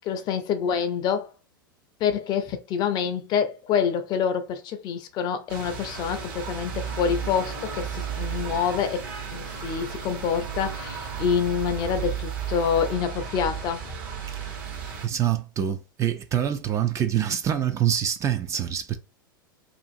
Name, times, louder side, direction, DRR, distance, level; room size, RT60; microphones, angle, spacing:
voice 1, 0.0-1.3 2.0-13.8, left 7 dB, 40° left, 0.5 m, -27 dB
sound 1, 5.5-15.1, right 7 dB, 55° right, 1.1 m, -34 dB
voice 2, 15.0-19.0, right 10 dB, 25° right, 0.4 m, -25 dB
2.5 x 2.5 x 2.6 m
hypercardioid pair, 95°, 12 cm